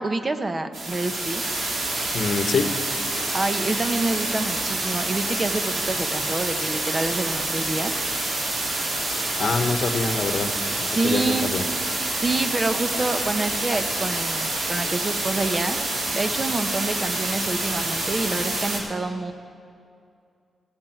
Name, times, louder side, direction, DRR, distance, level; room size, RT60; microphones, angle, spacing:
voice 1, 0.0-1.4 3.3-8.0 10.9-11.5 12.1-19.3, right 2 dB, 35° right, 8 dB, 0.9 m, -27 dB
sound 1, 0.7-18.8, right 2 dB, 75° right, 2.7 m, -27 dB
voice 2, 2.1-2.8 9.4-10.5 10.8-11.6, left 4 dB, 65° left, 7 dB, 1.0 m, -25 dB
14.5 x 6.0 x 8.9 m, 2.4 s
cardioid pair, 65°, 0 cm